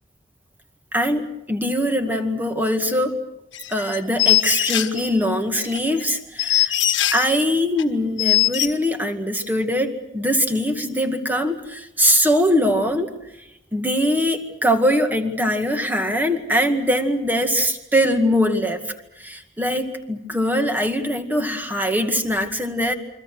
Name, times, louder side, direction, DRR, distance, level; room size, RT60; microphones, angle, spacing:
voice 1, 0.9-3.2 3.7-6.8 7.1-13.1 13.7-18.9 19.2-22.9, equal, 10° right, 6 dB, 2.1 m, -22 dB
sound 1, 3.5-5.1 5.6-7.3 7.8-7.9 8.2-8.7, left 14 dB, 85° left, 1.7 m, -21 dB
29.0 x 23.5 x 6.3 m, 0.86 s
head